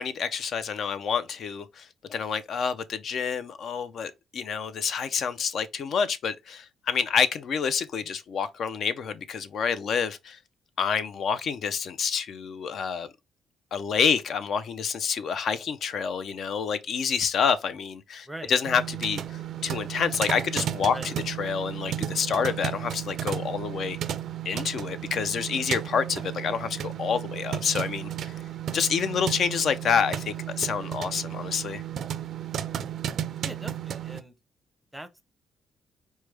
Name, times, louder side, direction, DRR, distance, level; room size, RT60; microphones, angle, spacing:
voice 1, 0.0-10.4 10.8-13.1 13.7-24.0 24.4-28.3 28.7-31.8, left 6 dB, 60° left, 0.5 m, -28 dB
sound 1, 18.6-34.2, right 10 dB, 65° right, 0.3 m, -34 dB
voice 2, 33.4-34.3 34.9-35.2, right 1 dB, 5° right, 0.6 m, -41 dB
4.6 x 2.1 x 3.3 m
cardioid pair, 90°, 0 cm